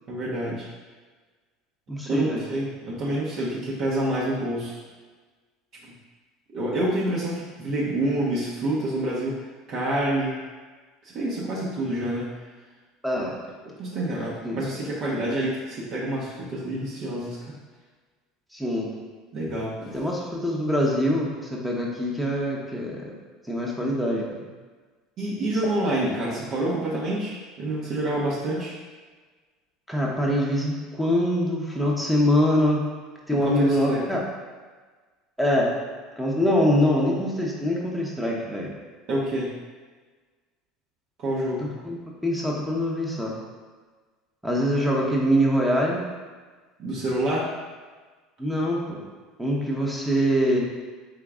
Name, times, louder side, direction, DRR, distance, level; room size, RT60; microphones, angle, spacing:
voice 1, 0.1-0.7 2.1-4.8 6.5-9.4 9.7-10.4 11.0-12.3 13.6-17.5 19.3-19.7 25.2-28.7 33.3-34.0 39.1-39.5 41.2-41.7 46.8-47.5, right 1 dB, 50° right, -6 dB, 1.0 m, -27 dB
voice 2, 1.9-2.4 13.0-13.3 14.4-14.6 18.5-18.9 19.8-23.1 23.5-24.3 29.9-32.9 33.3-34.2 35.4-35.7 36.2-38.7 41.6-42.0 42.2-43.4 44.4-46.0 48.4-49.0 49.4-50.6, equal, 5° right, -3 dB, 0.9 m, -24 dB
3.7 x 3.5 x 3.6 m, 1.4 s
supercardioid pair, 105°, 0 cm